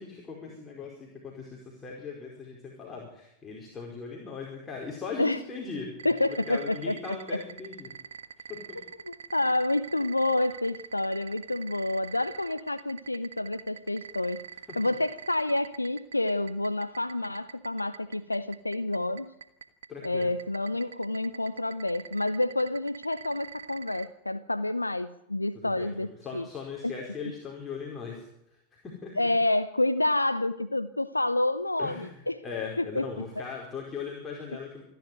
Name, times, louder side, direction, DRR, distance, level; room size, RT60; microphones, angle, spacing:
voice 1, 0.0-7.9 8.5-8.8 19.9-20.3 25.5-28.2 28.5-29.1 31.8-34.8, left 5 dB, 20° left, -2 dB, 4.7 m, -39 dB
voice 2, 6.0-7.4 9.0-14.4 14.8-19.3 20.0-26.5 26.8-26.9 29.2-32.4 32.8-33.1, left 2 dB, 85° left, 12 dB, 0.7 m, -28 dB
sound 1, 6.0-24.1, right 8 dB, 65° right, 1.4 m, -42 dB
27.0 x 11.0 x 9.2 m, 0.80 s
figure-of-eight pair, 90°, 0 cm